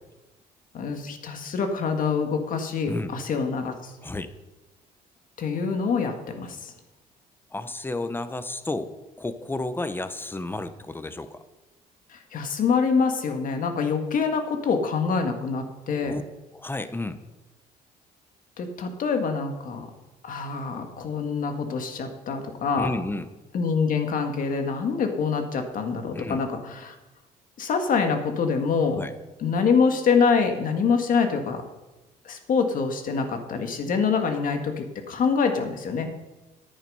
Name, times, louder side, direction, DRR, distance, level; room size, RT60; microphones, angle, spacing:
voice 1, 0.7-3.9 5.4-6.7 12.1-16.2 18.6-19.9 20.2-22.9 23.5-26.9 27.6-29.0 29.4-31.6 32.2-36.1, left 5 dB, 60° left, 5 dB, 1.9 m, -25 dB
voice 2, 4.0-4.3 7.5-8.9 9.2-11.4 16.0-16.2 16.5-17.2 22.8-23.3 26.1-26.4 28.9-29.1, left 2 dB, 15° left, 11 dB, 1.0 m, -32 dB
10.5 x 8.8 x 5.6 m, 1.1 s
cardioid pair, 90°, 16 cm